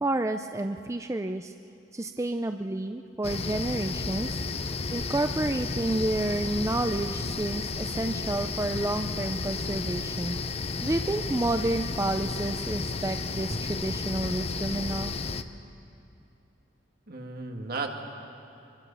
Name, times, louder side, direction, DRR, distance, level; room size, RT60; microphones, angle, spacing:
voice 1, 0.0-1.5 1.9-4.4 4.9-10.4 10.8-15.1, right 2 dB, 15° right, 7 dB, 0.5 m, -30 dB
sound 1, 3.2-15.4, left 4 dB, 35° left, 0.7 m, -32 dB
voice 2, 17.1-17.9, right 3 dB, 55° right, 2 dB, 2.2 m, -34 dB
24.5 x 23.5 x 7.0 m, 2.7 s
head